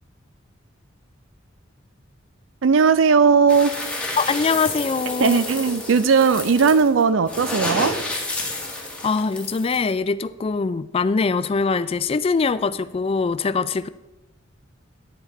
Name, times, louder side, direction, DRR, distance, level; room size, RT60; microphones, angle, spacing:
voice 1, 2.6-3.7 5.2-8.0, right 5 dB, 70° right, 0.5 m, -17 dB
sound 1, 3.5-9.9, left 2 dB, 5° left, 1.4 m, -30 dB
voice 2, 4.2-5.4 9.0-13.9, left 4 dB, 30° left, 0.3 m, -23 dB
10.5 x 7.1 x 4.2 m
head